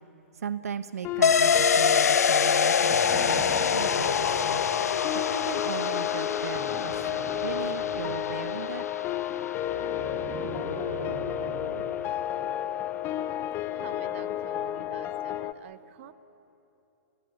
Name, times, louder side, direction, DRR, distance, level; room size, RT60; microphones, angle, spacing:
voice 1, 0.3-5.0 5.3-7.1 7.4-8.8, right 7 dB, 75° right, 13 dB, 0.8 m, -37 dB
sound 1, 1.0-15.5, left 11 dB, 25° left, 0.7 m, -32 dB
sound 2, 1.2-10.6 10.9-11.0, left 7 dB, 85° left, 0.4 m, -26 dB
sound 3, 2.9-4.8 6.5-8.3 9.6-11.8 13.2-13.3, right 2 dB, 25° right, 5.7 m, -40 dB
voice 2, 13.7-16.1, right 11 dB, 50° right, 13 dB, 1.0 m, -47 dB
24.5 x 16.0 x 9.9 m, 3.0 s
hypercardioid pair, 130°, 8 cm